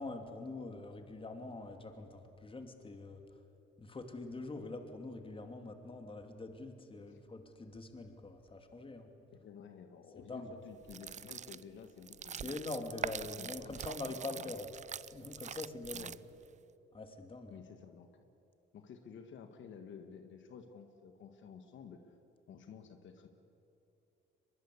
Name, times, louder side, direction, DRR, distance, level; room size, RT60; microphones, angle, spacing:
voice 1, 0.0-3.2 3.8-9.1 10.2-10.5 12.3-14.7 15.1-16.1 16.9-17.6, left 2 dB, 25° left, 6 dB, 2.6 m, -44 dB
voice 2, 9.4-12.7 13.0-14.6 15.9-16.2 17.5-18.2 18.7-22.1 22.5-23.3, left 6 dB, 70° left, 6 dB, 1.7 m, -52 dB
sound 1, 10.8-16.5, right 8 dB, 35° right, 0.5 m, -44 dB
23.0 x 22.0 x 8.4 m, 3.0 s
cardioid pair, 90°, 20 cm